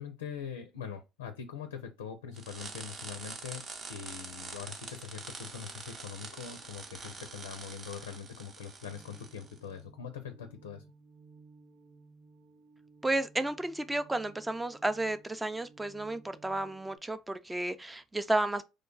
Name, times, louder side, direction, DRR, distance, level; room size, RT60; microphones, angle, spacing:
voice 1, 0.0-3.6 3.9-10.8, left 7 dB, 90° left, 0.4 m, -43 dB
sound 1, 2.3-9.6, right 4 dB, 45° right, 0.9 m, -45 dB
sound 2, 8.8-17.0, right 3 dB, 80° right, 0.8 m, -58 dB
voice 2, 13.0-18.6, right 2 dB, 15° right, 0.5 m, -32 dB
3.1 x 2.2 x 3.7 m
hypercardioid pair, 65°, 0 cm